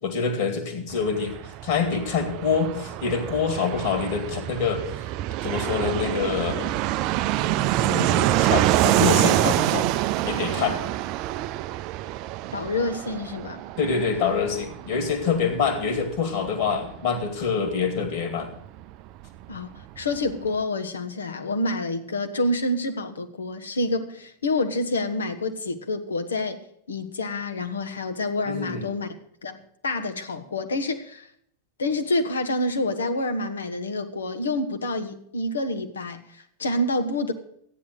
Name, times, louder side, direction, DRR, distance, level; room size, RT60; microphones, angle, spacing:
voice 1, 0.0-4.8 5.4-6.7 7.8-9.9 10.2-10.9 13.8-18.5 28.5-28.9, left 5 dB, 55° left, 2.5 m, -26 dB
Fixed-wing aircraft airplane, 0.9-19.3 19.5-19.6 19.8-20.5, right 15 dB, 40° right, 0.4 m, -26 dB
voice 2, 12.5-13.6 19.5-26.6 26.9-29.1 29.4-31.3 31.8-37.3, left 2 dB, 70° left, 1.4 m, -28 dB
13.5 x 9.9 x 6.3 m
figure-of-eight pair, 90°, 0 cm